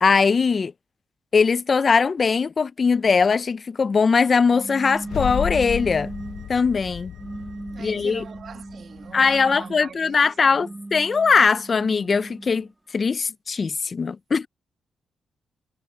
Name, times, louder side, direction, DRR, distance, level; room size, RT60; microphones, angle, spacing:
voice 1, 0.0-0.7 1.3-6.1 6.5-7.1 7.8-8.2 9.1-14.5, left 5 dB, 35° left, 0.4 m, -20 dB
sound 1, 4.5-6.5 7.2-9.8 10.4-12.7, right 2 dB, 15° right, 1.7 m, -37 dB
sound 2, 4.7-9.6, right 10 dB, 85° right, 6.8 m, -59 dB
sound 3, 5.0-9.3, left 10 dB, 85° left, 0.6 m, -33 dB
voice 2, 7.7-10.8, right 6 dB, 50° right, 1.5 m, -43 dB
cardioid pair, 120°, 0 cm